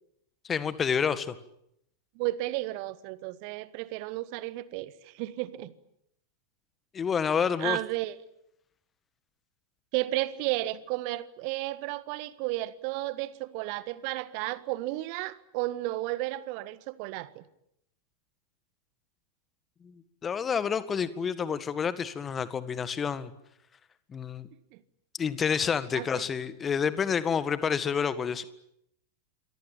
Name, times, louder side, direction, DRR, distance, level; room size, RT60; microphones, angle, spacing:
voice 1, 0.4-1.3 6.9-7.8 19.8-19.9 20.2-23.3 24.1-24.5 25.2-28.4, left 7 dB, 20° left, 14 dB, 1.8 m, -28 dB
voice 2, 2.1-5.7 7.6-8.2 9.9-17.4 24.7-24.8 25.9-26.1, right 17 dB, 45° right, 16 dB, 1.6 m, -33 dB
28.0 x 23.5 x 9.1 m, 0.78 s
figure-of-eight pair, 90°, 0 cm